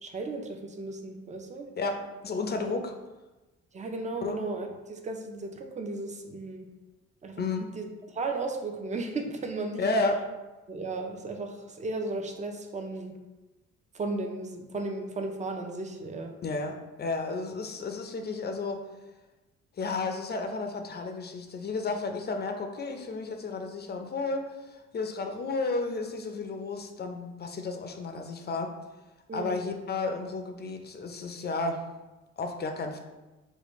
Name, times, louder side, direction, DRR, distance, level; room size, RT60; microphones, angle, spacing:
voice 1, 0.0-1.7 2.7-2.8 3.7-6.7 7.2-7.4 7.7-7.8 8.1-9.8 10.7-13.1 13.9-16.3 29.3-29.6, right 3 dB, 25° right, 3 dB, 0.5 m, -35 dB
voice 2, 1.8-2.9 4.2-4.4 7.4-7.7 9.8-10.2 16.4-18.8 19.8-28.7 29.3-31.8 32.4-33.0, left 3 dB, 35° left, 5 dB, 0.5 m, -32 dB
4.9 x 2.2 x 3.0 m, 1.1 s
cardioid pair, 90°, 30 cm